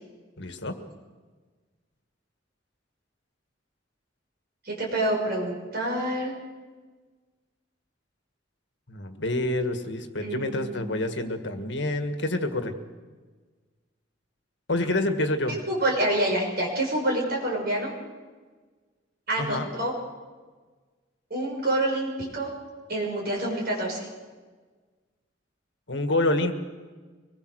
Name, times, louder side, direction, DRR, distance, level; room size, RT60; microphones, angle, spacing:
voice 1, 0.4-0.8 8.9-12.7 14.7-15.6 19.4-19.7 25.9-26.5, left 1 dB, 70° left, 7 dB, 1.8 m, -27 dB
voice 2, 4.6-6.3 10.2-10.8 15.7-17.9 19.3-19.9 21.3-22.5 22.9-24.1, right 1 dB, 55° right, -1 dB, 5.8 m, -27 dB
24.5 x 20.5 x 6.4 m, 1.4 s
head